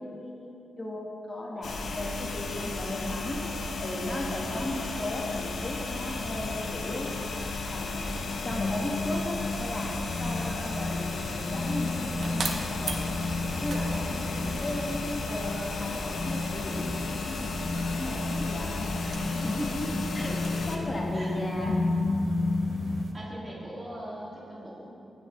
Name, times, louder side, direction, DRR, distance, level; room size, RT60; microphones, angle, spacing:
voice 1, 0.0-3.4 3.8-8.0 8.4-13.1 13.6-19.6 20.1-20.3 20.6-21.9, left 1 dB, 30° left, -1 dB, 1.4 m, -36 dB
sound 1, 1.6-20.8, left 3 dB, 75° left, 0.9 m, -34 dB
voice 2, 4.5-5.1 10.3-10.7 14.4-14.9 19.1-20.6 21.1-21.4 21.7-21.8 23.1-24.9, right 1 dB, 20° right, -6 dB, 2.1 m, -40 dB
sound 2, 6.1-23.1, left 2 dB, 45° left, 0.5 m, -33 dB
sound 3, 11.4-23.1, right 3 dB, 50° right, 0.8 m, -43 dB
16.0 x 6.5 x 3.1 m, 2.7 s
wide cardioid pair, 125°, 0 cm